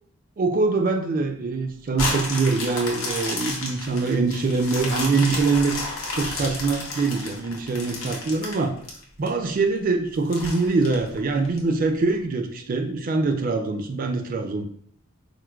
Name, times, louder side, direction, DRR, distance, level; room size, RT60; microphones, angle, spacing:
voice 1, 0.4-5.8 6.1-8.8 9.2-14.7, right 3 dB, 40° right, 6 dB, 0.3 m, -24 dB
sound 1, 1.9-9.3 9.8-9.9 10.3-11.6 12.1-12.2, left 2 dB, 75° left, 0.8 m, -31 dB
4.4 x 2.1 x 2.3 m, 0.62 s
head